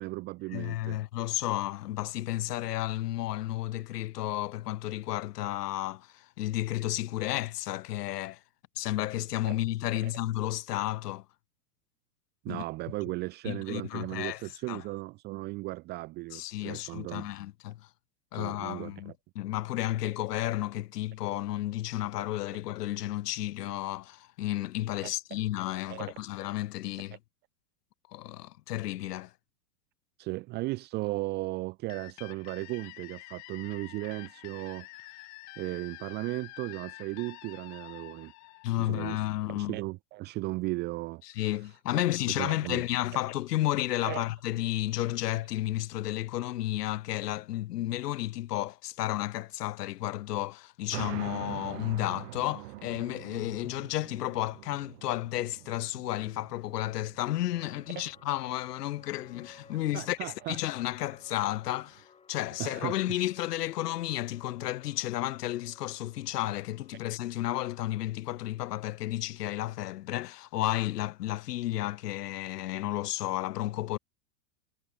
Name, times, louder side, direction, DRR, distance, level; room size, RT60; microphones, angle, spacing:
voice 1, 0.0-1.0 10.0-10.1 12.4-17.3 18.3-19.1 25.0-25.1 25.9-26.1 30.2-35.3 35.6-38.3 38.8-41.6 41.9-42.8 44.1-44.2 58.0-58.1 59.9-60.6 62.6-63.2, right 21 dB, 25° right, 0.6 m, -36 dB
voice 2, 0.5-8.4 8.8-11.2 12.5-12.6 13.4-14.4 14.7-14.8 16.3-17.8 18.3-27.2 28.1-29.3 38.6-39.8 41.4-74.0, left 15 dB, 85° left, 1.2 m, -32 dB
sound 1, 31.9-39.5, left 24 dB, 35° left, 2.6 m, -48 dB
sound 2, 50.9-62.0, right 19 dB, 55° right, 1.3 m, -46 dB
sound 3, 57.5-67.1, left 6 dB, 15° left, 3.2 m, -59 dB
supercardioid pair, 150°, 46 cm